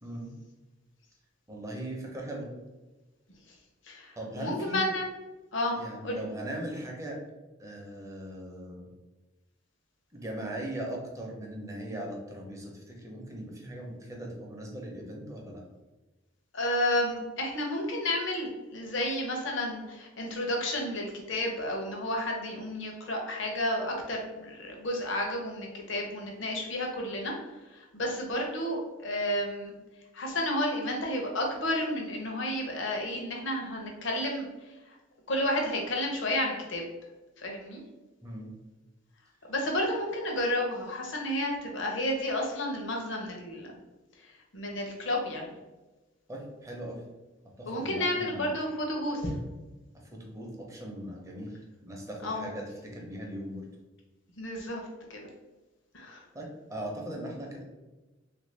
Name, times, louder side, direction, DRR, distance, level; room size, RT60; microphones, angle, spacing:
voice 1, 1.5-2.5 4.2-4.9 5.7-7.2 7.6-8.9 10.1-15.6 38.2-38.5 46.3-47.0 47.6-48.5 49.9-53.6 56.3-57.6, right 1 dB, 15° right, -1 dB, 0.6 m, -39 dB
voice 2, 3.9-5.1 5.5-5.8 6.0-6.2 16.5-27.3 27.7-29.7 30.1-34.5 34.9-35.0 35.3-36.8 37.4-37.8 39.5-43.7 44.5-45.5 47.7-49.3 52.2-52.5 54.4-54.8 55.1-55.3 55.9-56.2, left 1 dB, 75° left, 0 dB, 0.7 m, -31 dB
3.3 x 2.6 x 3.2 m, 1.1 s
head